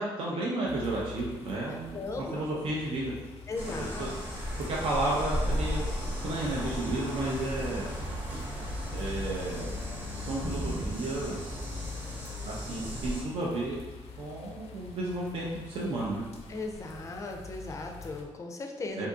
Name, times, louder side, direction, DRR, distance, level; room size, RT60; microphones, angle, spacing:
voice 1, 0.0-3.1 3.8-4.1 4.6-5.9 6.2-7.9 8.9-9.8 10.1-11.7 12.5-13.8 14.2-16.2 19.0-19.1, right 2 dB, 65° right, -4 dB, 0.5 m, -32 dB
sound 1, 0.7-18.2, left 3 dB, 85° left, 0.4 m, -43 dB
voice 2, 1.9-2.6 3.5-4.1 16.5-19.1, left 3 dB, 30° left, 3 dB, 0.4 m, -37 dB
sound 2, 3.5-13.2, equal, 15° right, 0.7 m, -36 dB
2.7 x 2.5 x 3.5 m, 1.2 s
cardioid pair, 125°, 10 cm